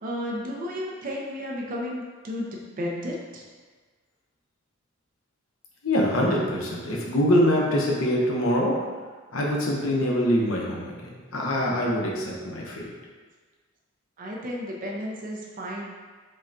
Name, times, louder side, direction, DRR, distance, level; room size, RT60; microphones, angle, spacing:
voice 1, 0.0-2.5 2.8-3.4 14.2-15.8, equal, 45° right, -2 dB, 0.5 m, -33 dB
voice 2, 5.8-8.9 9.3-12.9, equal, 75° left, -2 dB, 0.7 m, -24 dB
5.3 x 2.2 x 2.5 m, 1.4 s
head